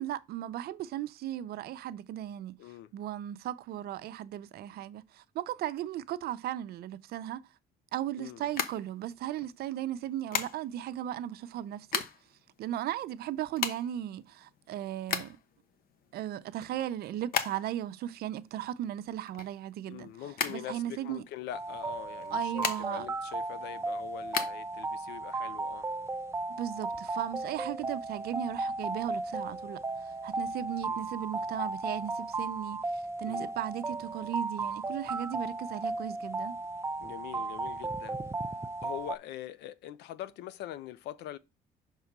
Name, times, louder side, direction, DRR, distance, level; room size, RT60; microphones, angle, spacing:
voice 1, 0.0-2.6 2.9-7.4 7.9-12.0 12.6-15.4 16.1-20.1 20.5-21.2 22.3-23.1 26.6-36.6, right 12 dB, 65° right, 0.6 m, -36 dB
voice 2, 2.6-2.9 8.2-8.5 19.9-25.9 30.9-31.0 33.2-33.5 37.0-38.2 38.8-41.4, left 12 dB, 80° left, 0.6 m, -43 dB
sound 1, 8.4-9.5 10.3-10.9 11.5-12.4 12.7-12.8 12.9-15.6 16.0-17.9 18.2-20.0 20.3-21.3 22.1-23.2 23.5-24.5, left 7 dB, 60° left, 1.0 m, -34 dB
sound 2, 21.5-39.2, right 3 dB, 15° right, 0.4 m, -35 dB
5.6 x 3.7 x 5.9 m
cardioid pair, 110°, 17 cm